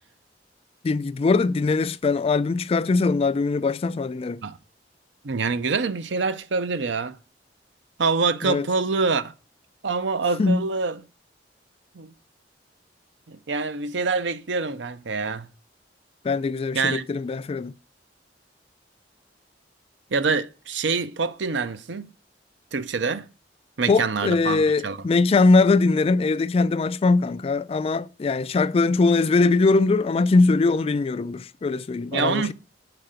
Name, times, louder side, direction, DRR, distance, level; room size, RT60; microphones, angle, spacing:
voice 1, 0.8-4.4 8.4-8.7 10.4-10.6 16.2-17.7 23.9-32.5, left 3 dB, 35° left, 0.3 m, -21 dB
voice 2, 5.2-7.2 8.0-9.3 9.8-11.0 11.9-12.1 13.3-15.5 16.7-17.1 20.1-22.1 22.7-23.3 23.8-25.0 32.1-32.5, right 4 dB, 80° right, 0.6 m, -25 dB
7.6 x 5.8 x 5.0 m
head